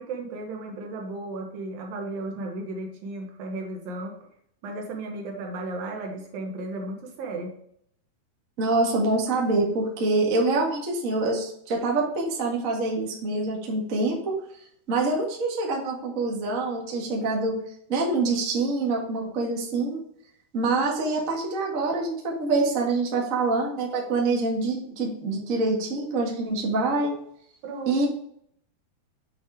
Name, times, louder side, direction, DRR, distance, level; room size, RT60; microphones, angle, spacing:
voice 1, 0.0-4.1 4.6-7.5 27.6-28.0, right 2 dB, 65° right, 1 dB, 2.9 m, -34 dB
voice 2, 8.6-14.3 14.9-17.6 17.9-20.0 20.5-27.1 27.8-28.1, right 3 dB, 85° right, -2 dB, 0.7 m, -25 dB
7.6 x 6.2 x 3.4 m, 0.68 s
omnidirectional pair, 4.6 m